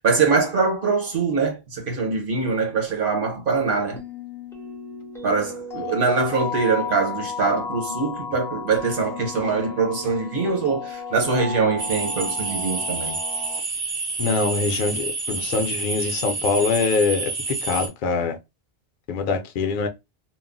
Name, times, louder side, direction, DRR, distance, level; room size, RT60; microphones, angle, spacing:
voice 1, 0.0-4.0 5.2-13.1, right 4 dB, 60° right, 1.0 m, -23 dB
sound 1, 4.0-13.6, left 4 dB, 5° left, 0.4 m, -34 dB
sound 2, 11.8-17.9, right 3 dB, 40° right, 0.7 m, -29 dB
voice 2, 14.2-18.4 19.1-19.9, left 4 dB, 60° left, 0.6 m, -24 dB
2.3 x 2.0 x 3.7 m
omnidirectional pair, 1.0 m